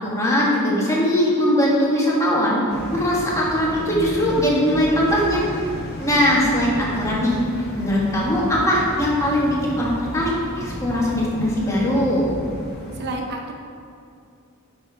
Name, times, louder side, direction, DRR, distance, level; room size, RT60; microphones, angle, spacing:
voice 1, 0.0-2.6 2.9-5.4 6.0-7.4 7.8-12.3, equal, 15° left, -5 dB, 1.6 m, -20 dB
sound 1, 2.7-13.0, left 1 dB, 45° left, 1.2 m, -33 dB
voice 2, 12.9-13.5, right 2 dB, 50° right, 1 dB, 0.7 m, -30 dB
8.9 x 6.1 x 3.5 m, 2.4 s
head